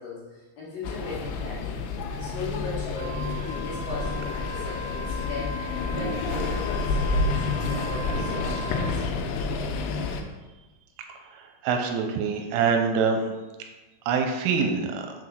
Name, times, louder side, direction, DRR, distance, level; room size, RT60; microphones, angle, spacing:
voice 1, 0.0-1.8 2.2-3.3 3.6-9.2, left 3 dB, 55° left, -8 dB, 2.9 m, -38 dB
sound 1, 0.8-10.2, left 3 dB, 80° left, 3.3 m, -29 dB
Wind instrument woodwind instrument, 2.9-9.0, left 3 dB, 40° right, 1.8 m, -37 dB
Toilet flush, 5.6-8.6, right 3 dB, 55° right, 1.3 m, -39 dB
voice 2, 11.3-13.3 14.1-15.0, right 5 dB, 85° right, 4 dB, 3.2 m, -25 dB
7.2 x 4.1 x 6.2 m, 1.2 s
omnidirectional pair, 5.8 m